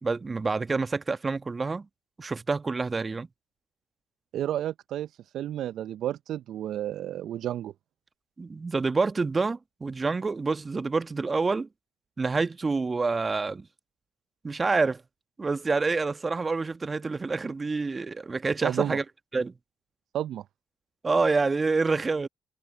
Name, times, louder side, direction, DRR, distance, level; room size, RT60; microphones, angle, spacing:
voice 1, 0.0-1.9 2.2-3.3 8.4-11.7 12.2-13.7 14.4-15.0 15.4-19.0 19.3-19.5 21.0-22.3, right 4 dB, 30° right, 1.4 m, -27 dB
voice 2, 4.3-5.1 5.3-7.7 18.6-19.0 20.1-20.4, right 11 dB, 65° right, 0.8 m, -31 dB
hypercardioid pair, 45°, 0 cm